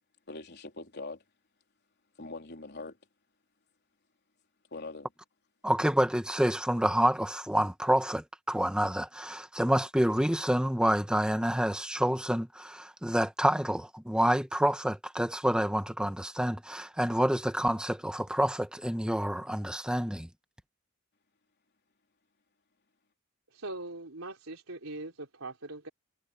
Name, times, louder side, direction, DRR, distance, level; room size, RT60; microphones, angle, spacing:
voice 1, 0.3-1.2 2.2-3.0 4.7-5.1, left 3 dB, 50° left, 3.6 m, -42 dB
voice 2, 5.6-20.3, equal, 5° right, 1.2 m, -28 dB
voice 3, 23.5-25.9, right 2 dB, 70° right, 4.1 m, -41 dB
head